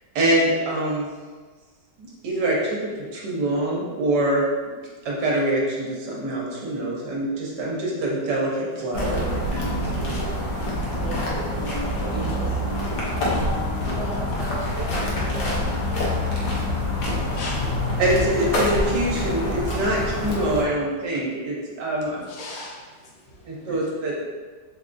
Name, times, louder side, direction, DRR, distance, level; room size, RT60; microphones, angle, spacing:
voice 1, 0.1-1.1 2.0-4.4 5.0-9.8 18.0-22.2 23.4-24.2, right 1 dB, 70° right, -3 dB, 1.3 m, -24 dB
sound 1, 8.9-20.6, left 1 dB, 65° left, 1.3 m, -26 dB
voice 2, 9.6-10.4 10.9-12.6 13.2-16.8, right 2 dB, 45° right, -10 dB, 0.4 m, -36 dB
voice 3, 17.2-17.6 22.1-23.8, left 2 dB, 85° left, -3 dB, 1.5 m, -38 dB
3.6 x 3.5 x 2.5 m, 1.4 s
omnidirectional pair, 2.0 m